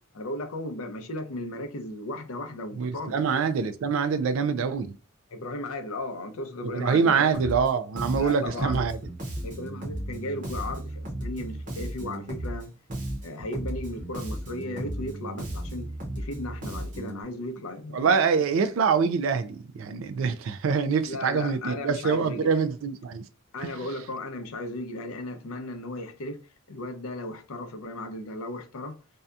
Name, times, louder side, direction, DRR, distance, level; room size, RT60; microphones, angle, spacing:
voice 1, 0.1-3.2 5.3-7.4 8.1-8.8 9.4-12.7 13.2-18.3 21.1-22.6 23.5-26.4 26.7-28.9, left 1 dB, 80° left, 0.5 m, -36 dB
voice 2, 2.8-5.0 6.6-9.0 17.9-23.3 23.6-23.8, right 5 dB, 65° right, 0.3 m, -25 dB
Bass guitar, 7.3-7.7 7.9-12.6 12.9-17.2, right 1 dB, 40° right, 0.8 m, -35 dB
2.7 x 2.2 x 2.3 m
head